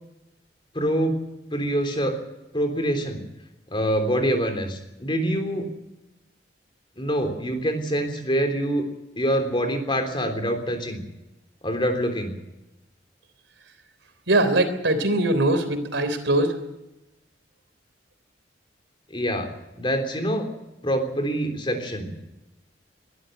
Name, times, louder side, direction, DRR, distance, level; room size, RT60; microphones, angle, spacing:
voice 1, 0.7-1.2 1.5-2.1 2.5-3.2 3.7-5.7 7.0-8.8 9.2-11.0 11.6-12.3 19.1-19.5 19.8-20.4 20.8-22.1, equal, 25° left, 5 dB, 3.5 m, -25 dB
voice 2, 14.3-16.5, right 2 dB, 85° right, 10 dB, 3.5 m, -21 dB
23.0 x 12.5 x 9.2 m, 0.96 s
head